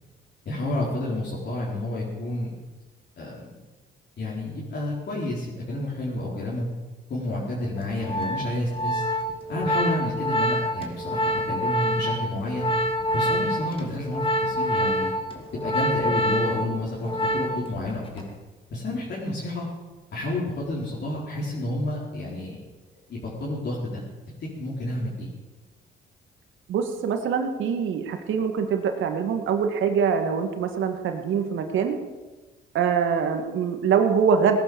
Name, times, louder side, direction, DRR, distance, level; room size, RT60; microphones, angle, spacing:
voice 1, 0.4-2.5 3.2-3.5 4.2-6.7 7.1-9.1 9.5-12.7 13.1-15.1 15.6-18.1 18.7-19.7 20.1-22.6 23.1-24.1 24.4-25.3, left 1 dB, 60° left, -6 dB, 4.5 m, -30 dB
Organ, 7.8-17.8 18.1-18.4, equal, 25° left, 2.7 m, -26 dB
voice 2, 26.7-32.0 32.7-34.6, right 6 dB, 80° right, 5 dB, 2.2 m, -24 dB
18.5 x 11.0 x 7.2 m, 1.2 s
cardioid pair, 90°, 20 cm